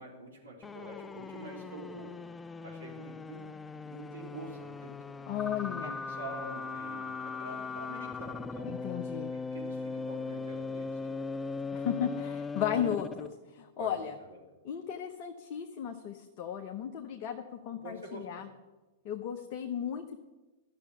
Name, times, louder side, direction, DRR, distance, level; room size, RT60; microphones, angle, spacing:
voice 1, 0.0-2.2 2.6-5.0 5.6-8.8 9.3-11.2 13.8-14.4 17.7-18.4, right 2 dB, 75° right, -1 dB, 3.5 m, -46 dB
sound 1, 0.6-13.3, left 4 dB, 15° left, 0.3 m, -39 dB
voice 2, 5.3-6.0 8.6-9.3 11.7-14.1 14.6-18.5 19.0-20.2, left 9 dB, 40° left, 5 dB, 0.9 m, -35 dB
12.5 x 6.9 x 9.8 m, 1.1 s
figure-of-eight pair, 100°, 0 cm